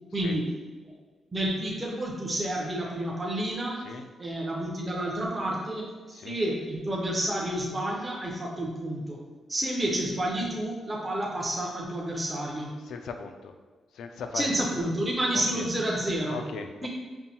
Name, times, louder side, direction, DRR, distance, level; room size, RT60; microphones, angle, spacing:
voice 1, 0.1-0.5 1.3-3.8 4.2-9.2 9.5-12.7 14.3-16.4 16.8-16.9, right 1 dB, 15° right, -3 dB, 0.5 m, -30 dB
voice 2, 12.8-13.5 13.9-14.7 15.3-15.6 16.3-16.7, left 5 dB, 85° left, 6 dB, 0.3 m, -38 dB
5.4 x 2.6 x 2.8 m, 1.3 s
wide cardioid pair, 170°, 0 cm